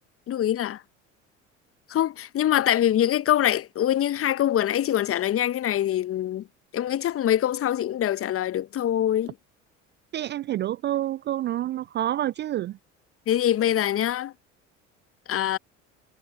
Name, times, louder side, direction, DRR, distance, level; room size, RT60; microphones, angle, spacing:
voice 1, 0.3-0.8 1.9-6.5 6.7-9.3 13.3-14.3 15.3-15.6, left 11 dB, 35° left, 1.1 m, -24 dB
voice 2, 10.1-12.8, right 13 dB, 30° right, 0.4 m, -28 dB
figure-of-eight pair, 60°, 38 cm